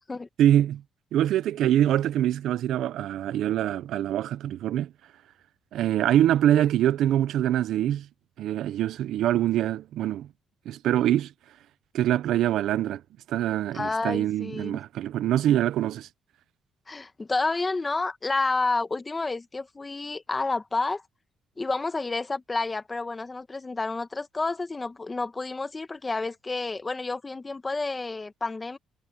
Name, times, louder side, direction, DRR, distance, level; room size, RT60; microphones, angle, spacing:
voice 1, 0.4-0.8 1.1-4.9 5.7-8.1 8.4-10.3 10.7-11.3 11.9-13.0 13.3-16.1, right 12 dB, 80° right, 0.6 m, -24 dB
voice 2, 13.7-14.8 16.9-21.0 21.6-28.8, left 3 dB, 25° left, 1.5 m, -30 dB
cardioid pair, 90°, 0 cm